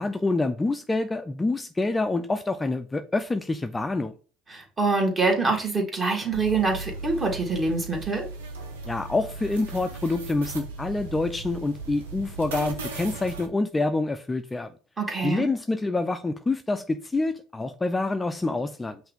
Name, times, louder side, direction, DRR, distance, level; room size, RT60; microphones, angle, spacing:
voice 1, 0.0-4.1 8.9-14.7 15.2-19.0, left 2 dB, 15° left, 0.4 m, -27 dB
voice 2, 4.5-8.2 15.0-15.5, right 3 dB, 30° right, 1.8 m, -25 dB
sound 1, 6.3-13.5, right 3 dB, 90° right, 0.7 m, -37 dB
5.5 x 2.6 x 3.6 m
hypercardioid pair, 75°, 0 cm